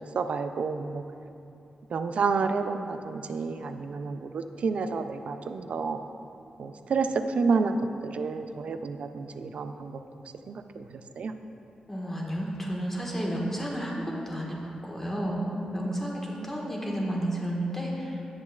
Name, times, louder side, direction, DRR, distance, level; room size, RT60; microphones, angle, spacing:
voice 1, 0.1-1.0 1.9-6.0 6.6-7.8 8.0-10.0 10.5-11.3 15.9-16.0 16.3-16.5, right 4 dB, 65° right, 8 dB, 0.4 m, -30 dB
voice 2, 11.9-14.6 14.8-18.2, equal, 15° left, -2 dB, 1.3 m, -31 dB
10.5 x 7.1 x 2.4 m, 2.8 s
cardioid pair, 95°, 2 cm